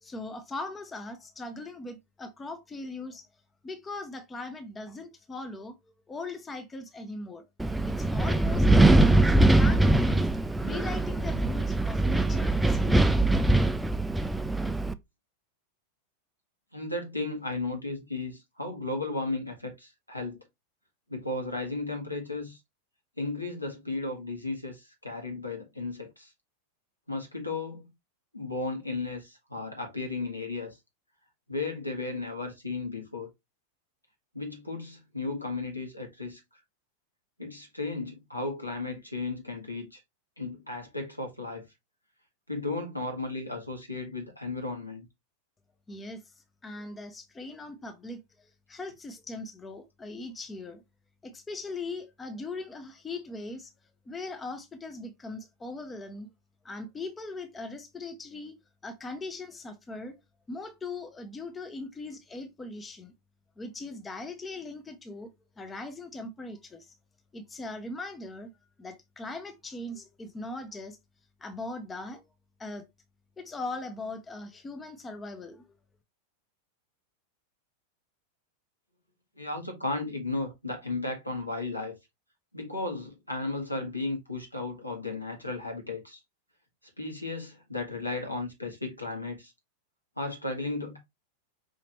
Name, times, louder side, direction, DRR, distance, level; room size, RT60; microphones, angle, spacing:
voice 1, 0.0-3.3 3.6-5.8 6.1-7.5 7.8-9.3 9.5-10.2 10.6-13.1 45.9-46.2 46.6-50.8 51.2-53.7 54.1-56.3 56.6-60.2 60.5-63.1 63.6-65.3 65.6-66.9 67.3-68.5 68.8-71.0 71.4-72.2 72.6-72.9 73.4-75.7, left 2 dB, 15° left, 0.7 m, -40 dB
Wind, 7.6-14.9, right 2 dB, 5° right, 0.3 m, -22 dB
voice 2, 16.7-20.4 21.1-22.6 23.2-26.3 27.1-27.9 28.3-30.8 31.5-33.3 34.3-36.4 37.4-40.0 40.4-41.7 42.5-45.0 79.3-82.0 82.5-86.2 87.0-89.5 90.2-91.0, left 2 dB, 85° left, 1.4 m, -34 dB
5.0 x 2.9 x 2.9 m
figure-of-eight pair, 90°, 0 cm